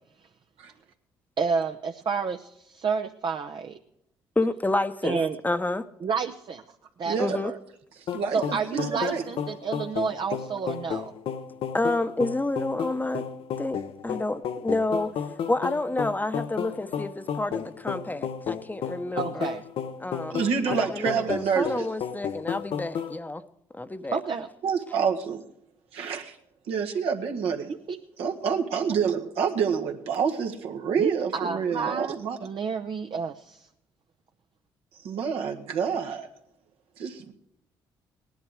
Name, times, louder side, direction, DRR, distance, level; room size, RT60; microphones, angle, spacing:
voice 1, 1.4-3.8 5.0-5.4 6.0-6.6 7.0-7.2 7.4-7.5 8.3-11.1 19.2-19.6 24.1-24.5 27.7-28.0 31.0-33.6, right 5 dB, 50° right, 0.8 m, -30 dB
voice 2, 4.4-5.8 7.2-7.5 11.7-13.2 13.6-15.1 15.5-19.5 20.0-23.4 23.7-24.2, left 2 dB, 15° left, 0.9 m, -29 dB
sound 1, 8.1-23.2, left 8 dB, 65° left, 0.9 m, -33 dB
voice 3, 8.1-9.2 20.3-21.8 24.6-25.4 25.9-26.2 26.7-27.7 28.2-32.4 35.0-36.3 37.0-37.3, right 6 dB, 75° right, 1.7 m, -27 dB
18.0 x 11.0 x 4.9 m
supercardioid pair, 55°, 10 cm